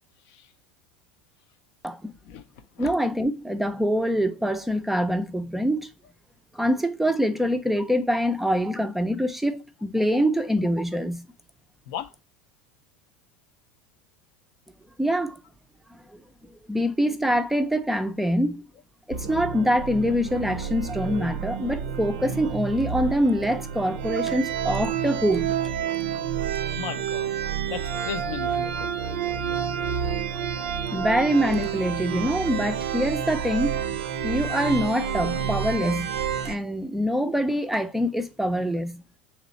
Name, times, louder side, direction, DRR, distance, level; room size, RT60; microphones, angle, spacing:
voice 1, 2.2-2.9 11.9-12.1 26.8-27.3 27.7-28.9 30.9-31.0, left 8 dB, 60° left, 0.5 m, -36 dB
voice 2, 2.8-5.9 6.5-11.3 15.0-15.4 15.9-18.7 19.1-25.6 30.9-33.8 34.2-36.1 36.4-39.0, equal, 5° right, 0.4 m, -25 dB
sound 1, 19.1-36.6, right 8 dB, 75° right, 0.5 m, -29 dB
3.0 x 3.0 x 3.9 m
hypercardioid pair, 85°, 6 cm